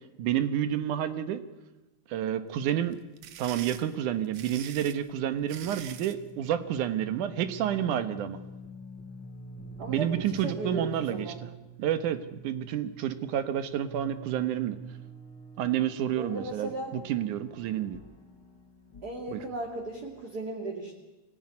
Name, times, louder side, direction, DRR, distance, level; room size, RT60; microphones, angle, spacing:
voice 1, 0.2-1.4 2.1-3.0 3.4-8.4 9.9-11.5 11.8-14.8 15.6-18.0 19.3-19.4, right 10 dB, 85° right, 11 dB, 2.7 m, -29 dB
sound 1, 2.9-6.2, right 10 dB, 70° right, 2.2 m, -44 dB
sound 2, 5.3-20.3, right 1 dB, 40° left, 4.2 m, -47 dB
voice 2, 9.8-11.4 16.2-16.9 19.0-20.9, right 2 dB, 35° right, 0 dB, 2.7 m, -36 dB
24.0 x 19.0 x 9.7 m, 1.1 s
omnidirectional pair, 3.4 m